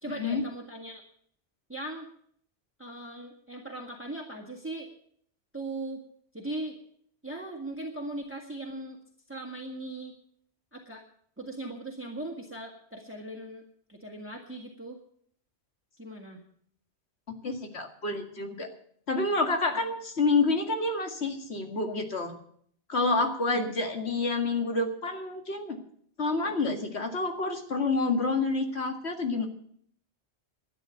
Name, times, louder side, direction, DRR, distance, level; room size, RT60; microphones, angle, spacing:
voice 1, 0.0-1.0 1.7-2.1 2.8-4.9 5.5-6.0 6.3-6.8 7.2-9.0 9.3-10.1 10.7-11.0 11.4-13.6 13.9-15.0 16.0-16.4 23.5-23.6 26.4-26.5, right 1 dB, 10° right, 0 dB, 1.8 m, -39 dB
voice 2, 17.4-18.7 19.1-22.3 22.9-25.8 26.2-29.5, left 3 dB, 70° left, 4 dB, 2.3 m, -28 dB
12.0 x 9.7 x 9.1 m, 0.64 s
omnidirectional pair, 1.1 m